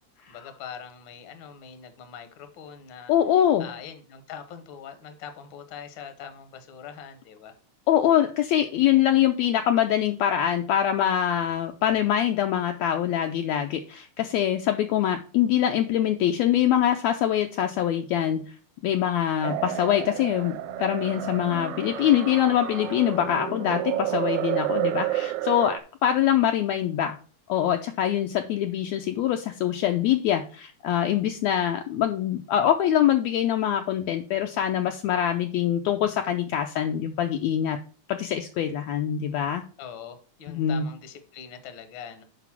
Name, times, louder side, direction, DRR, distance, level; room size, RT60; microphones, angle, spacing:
voice 1, 0.3-3.1 3.6-7.5 39.8-42.2, left 7 dB, 60° left, 8 dB, 1.3 m, -42 dB
voice 2, 3.1-3.7 7.9-18.4 18.8-27.2 27.5-37.8 38.1-39.6 40.5-40.8, left 10 dB, 80° left, 5 dB, 1.6 m, -24 dB
sound 1, 19.4-24.9, left 2 dB, 30° right, 0.9 m, -40 dB
sound 2, 19.4-25.8, right 15 dB, 80° right, 1.9 m, -30 dB
6.0 x 5.2 x 5.8 m, 0.40 s
omnidirectional pair, 3.5 m